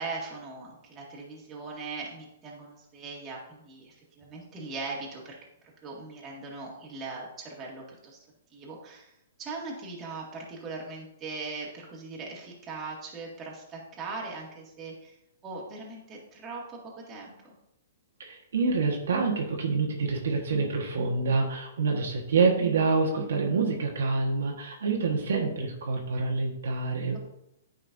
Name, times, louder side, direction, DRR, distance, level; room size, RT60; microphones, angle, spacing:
voice 1, 0.0-5.4 5.6-8.3 8.5-9.1 9.4-15.2 15.4-17.5, right 3 dB, 20° right, -3 dB, 1.9 m, -40 dB
voice 2, 18.2-27.2, right 4 dB, 75° right, 1 dB, 1.3 m, -27 dB
9.6 x 5.4 x 2.6 m, 0.83 s
hypercardioid pair, 140°, 0 cm